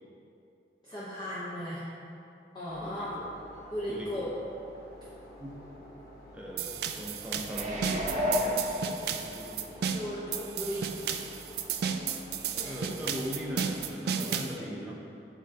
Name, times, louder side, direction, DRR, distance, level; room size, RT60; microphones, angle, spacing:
voice 1, 0.8-1.9 2.5-3.1 3.7-4.3 9.9-11.0 12.5-12.8 14.2-14.6, equal, 25° left, -10 dB, 0.8 m, -37 dB
sound 1, 2.7-13.7, left 1 dB, 65° left, 0.9 m, -50 dB
voice 2, 2.8-3.3 3.9-4.3 5.4-5.6 6.3-9.8 12.6-15.0, equal, 5° right, -4 dB, 0.7 m, -40 dB
sound 2, 6.6-14.6, right 7 dB, 65° right, 0.3 m, -33 dB
sound 3, 7.4-9.5 10.0-10.1, left 1 dB, 40° right, 0.9 m, -31 dB
9.8 x 3.7 x 2.8 m, 2.7 s
head